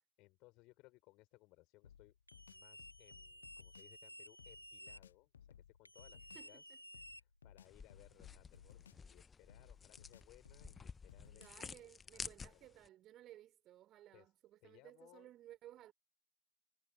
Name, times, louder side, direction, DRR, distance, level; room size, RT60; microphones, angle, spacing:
voice 1, 0.2-2.2 2.5-5.3 5.7-6.8 7.1-12.7 14.1-14.3 14.6-15.3, left 22 dB, 40° left, 4.7 m, -66 dB
sound 1, 1.8-4.0 4.4-6.5 6.9-9.2 9.5-11.7, left 8 dB, 65° left, 0.7 m, -61 dB
sound 2, 2.3-5.0 5.8-7.6, equal, 90° left, 2.2 m, -55 dB
voice 2, 6.3-6.8 11.3-15.9, right 13 dB, 30° right, 5.2 m, -59 dB
sound 3, 7.7-12.9, left 5 dB, 15° left, 1.1 m, -52 dB
figure-of-eight pair, 90°, 0 cm